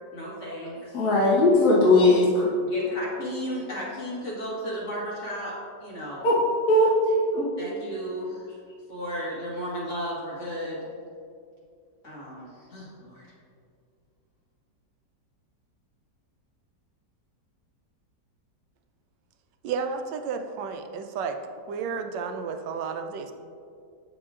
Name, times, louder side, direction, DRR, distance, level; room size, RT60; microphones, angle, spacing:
voice 1, 0.1-0.9 2.0-2.2 2.6-6.4 7.6-8.5 8.9-10.9 12.0-13.3, equal, 45° left, -6 dB, 1.7 m, -34 dB
voice 2, 0.9-2.5 6.2-6.4 6.7-7.5, left 2 dB, 60° left, -6 dB, 1.6 m, -19 dB
voice 3, 19.6-21.4 21.7-23.3, right 5 dB, 85° right, 6 dB, 1.2 m, -32 dB
8.7 x 6.3 x 2.4 m, 2.3 s
omnidirectional pair, 1.9 m